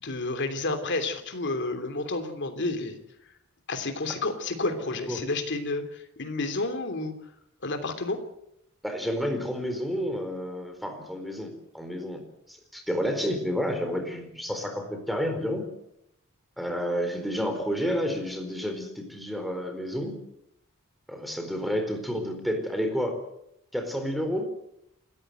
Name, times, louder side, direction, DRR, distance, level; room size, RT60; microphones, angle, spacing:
voice 1, 0.0-3.0 3.7-7.1 7.6-8.2, left 2 dB, 55° left, 7 dB, 3.1 m, -30 dB
voice 2, 8.8-12.2 12.5-15.7 16.6-20.2 21.1-23.2 23.7-24.5, equal, ahead, 5 dB, 4.3 m, -30 dB
28.0 x 14.0 x 8.0 m, 0.77 s
head